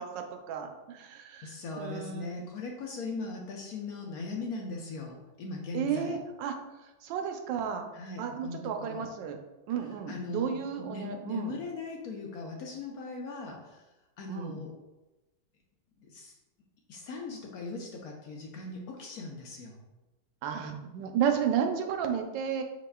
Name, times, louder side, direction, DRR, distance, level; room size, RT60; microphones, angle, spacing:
voice 1, 0.0-2.4 5.7-7.9 8.2-9.4 9.7-11.6 14.3-14.6 20.4-22.6, right 7 dB, 80° right, 5 dB, 1.3 m, -33 dB
voice 2, 1.4-6.1 7.9-8.6 8.9-9.1 10.1-10.5 10.8-13.8 14.2-14.7 16.0-16.3 16.9-19.8, left 3 dB, 65° left, 0 dB, 1.0 m, -39 dB
4.9 x 4.8 x 2.3 m, 1.0 s
omnidirectional pair, 2.0 m